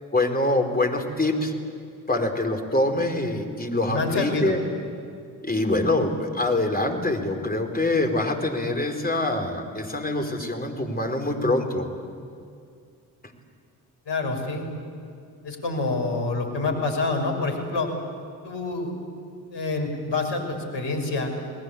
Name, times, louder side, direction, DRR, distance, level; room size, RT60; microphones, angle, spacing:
voice 1, 0.1-1.5 2.1-4.6 5.4-11.9, left 2 dB, 20° left, 3 dB, 4.5 m, -25 dB
voice 2, 3.9-4.6 14.1-14.7 15.4-17.9 18.4-18.9 19.5-21.3, left 3 dB, 55° left, 4 dB, 6.0 m, -27 dB
29.5 x 19.5 x 8.6 m, 2.3 s
hypercardioid pair, 40°, 50 cm